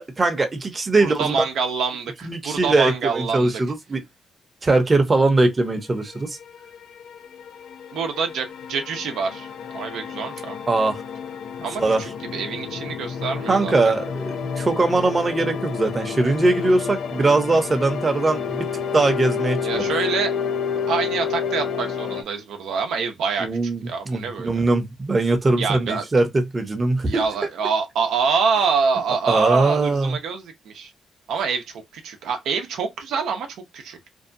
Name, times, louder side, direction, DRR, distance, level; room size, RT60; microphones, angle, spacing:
voice 1, 0.0-1.4 2.2-4.0 4.6-6.4 10.7-11.0 11.8-12.0 13.5-18.7 18.9-19.9 23.4-27.2 29.3-30.2, right 2 dB, 30° right, 0.7 m, -21 dB
voice 2, 0.9-3.6 7.9-9.5 9.7-10.6 11.6-13.7 19.6-20.3 20.9-23.5 23.8-24.6 25.6-26.0 27.0-30.9 31.3-33.5 33.7-34.0, right 5 dB, 90° right, 0.6 m, -26 dB
sound 1, 6.1-22.2, left 6 dB, 80° left, 0.4 m, -30 dB
2.7 x 2.2 x 2.6 m
cardioid pair, 95°, 0 cm